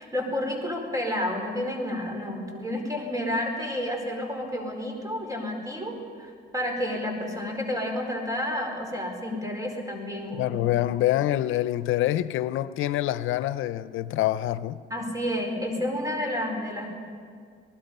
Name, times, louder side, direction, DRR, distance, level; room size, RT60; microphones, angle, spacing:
voice 1, 0.0-10.7 14.9-16.9, left 1 dB, 15° right, 4.7 m, -30 dB
voice 2, 10.4-14.8, left 14 dB, 90° left, 0.6 m, -26 dB
27.5 x 19.5 x 5.5 m
cardioid pair, 90°, 20 cm